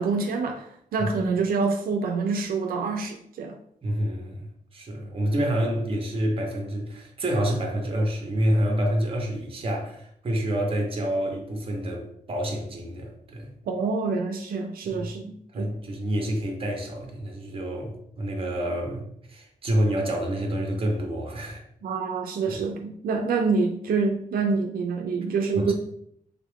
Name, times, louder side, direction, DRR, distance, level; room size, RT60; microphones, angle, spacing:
voice 1, 0.0-3.6 13.7-15.7 21.8-25.7, right 4 dB, 85° right, 0.4 m, -26 dB
voice 2, 3.8-13.5 14.8-15.1 15.5-21.6 22.5-22.6 25.5-25.7, right 1 dB, 40° right, 0.7 m, -28 dB
3.5 x 2.3 x 3.4 m
wide cardioid pair, 155°, 15 cm